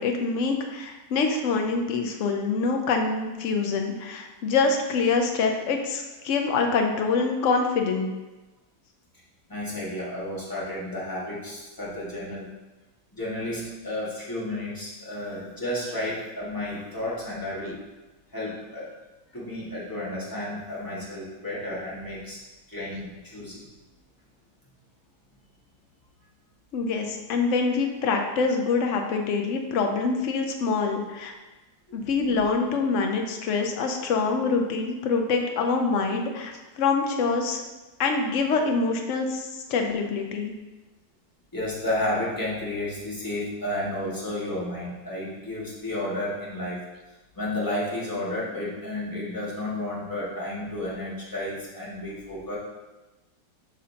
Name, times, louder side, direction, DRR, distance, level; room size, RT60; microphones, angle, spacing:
voice 1, 0.0-8.1 26.7-31.3 31.9-37.6 38.0-40.5, left 4 dB, 55° left, 3 dB, 0.9 m, -25 dB
voice 2, 9.5-12.5 13.1-17.8 18.3-18.9 19.3-22.4 22.7-23.7 31.9-32.1 41.5-46.8 47.3-52.6, left 1 dB, 10° left, -8 dB, 1.9 m, -32 dB
8.5 x 5.5 x 2.9 m, 1.1 s
omnidirectional pair, 2.0 m